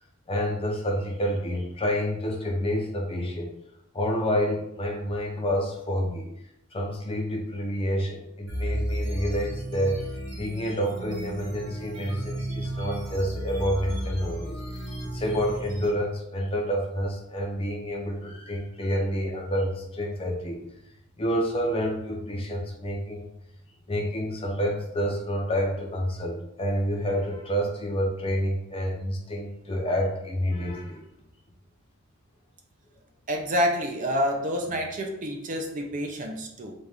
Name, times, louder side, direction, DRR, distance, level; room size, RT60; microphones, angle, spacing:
voice 1, 0.3-3.5 3.9-6.3 6.7-14.9 15.1-20.6 21.2-23.3 23.9-31.0, equal, 25° left, 0 dB, 0.6 m, -28 dB
sound 1, 8.5-15.9, right 1 dB, 60° right, 1.5 m, -33 dB
voice 2, 33.3-36.7, equal, 35° right, 2 dB, 0.5 m, -28 dB
4.1 x 2.4 x 3.3 m, 0.79 s
head